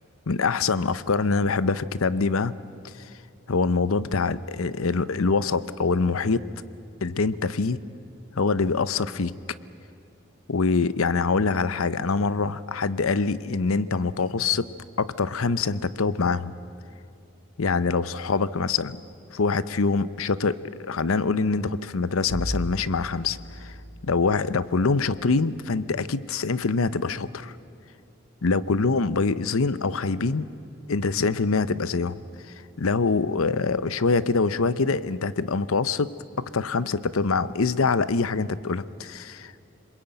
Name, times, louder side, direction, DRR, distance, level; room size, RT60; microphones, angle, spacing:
voice 1, 0.3-2.5 2.8-2.9 3.5-6.5 7.0-7.8 8.4-9.3 10.5-14.6 15.0-16.5 17.6-18.9 19.3-23.7 24.0-27.5 28.4-30.5 30.9-32.2 32.8-36.1 36.5-39.6, left 4 dB, 85° left, 15 dB, 0.7 m, -24 dB
Bowed string instrument, 22.3-25.3, equal, 25° left, 4.8 m, -36 dB
26.5 x 21.5 x 9.0 m, 2.5 s
head